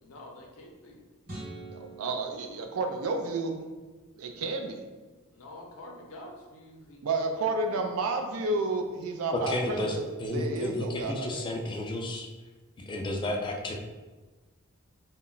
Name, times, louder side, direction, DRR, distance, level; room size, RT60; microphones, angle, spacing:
voice 1, 0.0-1.0 5.3-7.0 7.4-8.1, left 1 dB, 75° left, 0 dB, 0.6 m, -48 dB
sound 1, 1.2-3.6, right 2 dB, 40° right, 1.1 m, -45 dB
voice 2, 1.7-3.7 4.2-4.8 7.0-11.4, right 3 dB, 75° right, 4 dB, 0.4 m, -31 dB
voice 3, 9.3-12.3 12.8-13.7, left 1 dB, 20° left, 1 dB, 0.3 m, -32 dB
2.2 x 2.0 x 3.7 m, 1.3 s
head